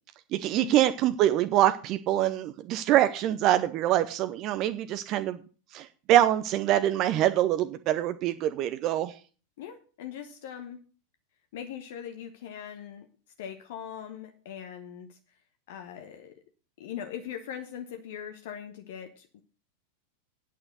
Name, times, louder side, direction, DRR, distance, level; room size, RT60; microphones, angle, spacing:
voice 1, 0.3-5.4 5.7-9.2, right 13 dB, 35° right, 10 dB, 0.7 m, -25 dB
voice 2, 9.6-10.8 11.5-13.1 13.4-15.2 15.7-16.4 16.8-19.4, left 9 dB, 55° left, 8 dB, 1.0 m, -41 dB
8.9 x 6.5 x 7.9 m, 0.38 s
figure-of-eight pair, 90°, 0 cm